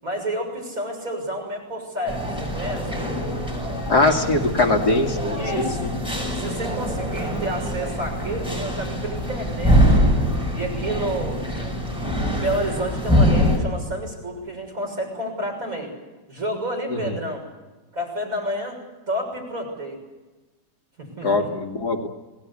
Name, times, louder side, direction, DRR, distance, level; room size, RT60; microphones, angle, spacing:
voice 1, 0.0-3.0 5.4-5.9 6.4-10.0 10.5-11.9 12.3-15.9 16.3-17.5 17.9-18.8 19.1-20.0 21.0-21.5, right 1 dB, 40° right, 0 dB, 7.2 m, -30 dB
sound 1, 2.1-13.6, equal, ahead, 6.7 m, -23 dB
voice 2, 3.9-5.7 21.2-22.1, left 2 dB, 55° left, 1 dB, 2.7 m, -21 dB
27.5 x 19.0 x 8.4 m, 1.2 s
omnidirectional pair, 2.1 m